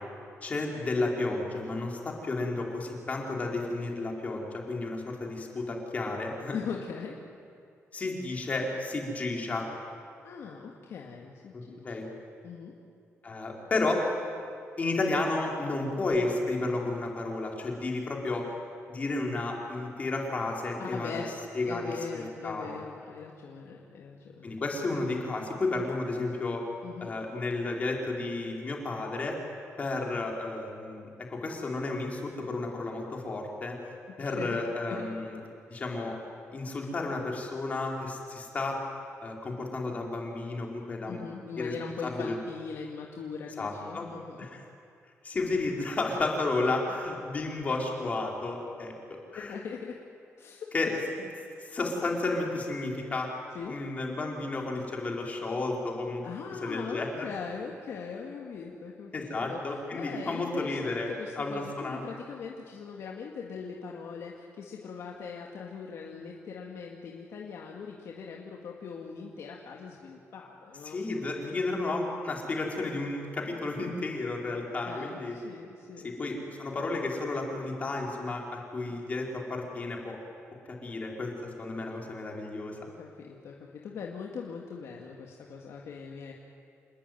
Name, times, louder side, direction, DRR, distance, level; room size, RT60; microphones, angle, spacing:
voice 1, 0.4-6.6 7.9-9.7 11.5-12.1 13.2-14.1 14.8-18.5 18.9-21.2 21.5-22.7 24.4-26.6 27.0-29.4 29.8-33.8 34.2-35.4 35.7-36.2 36.5-38.8 39.2-41.2 41.6-41.7 42.0-42.3 43.6-44.1 44.4-44.6 45.2-48.9 49.3-49.6 50.7-51.0 51.7-53.3 53.7-56.2 56.6-57.3 59.1-62.1 70.8-75.3 76.0-80.2 80.7-82.8, left 2 dB, 30° left, 0 dB, 4.3 m, -32 dB
voice 2, 6.5-7.2 10.2-12.0 12.4-12.7 20.8-21.3 21.6-24.6 26.8-27.1 34.3-34.6 34.9-35.1 41.1-44.5 49.4-50.0 50.4-51.3 53.5-53.8 56.2-59.6 59.9-71.0 71.4-71.7 74.8-76.1 81.8-82.1 82.8-86.3, left 6 dB, 65° left, 0 dB, 2.2 m, -41 dB
28.0 x 20.5 x 9.3 m, 2.4 s
wide cardioid pair, 160°, 5 cm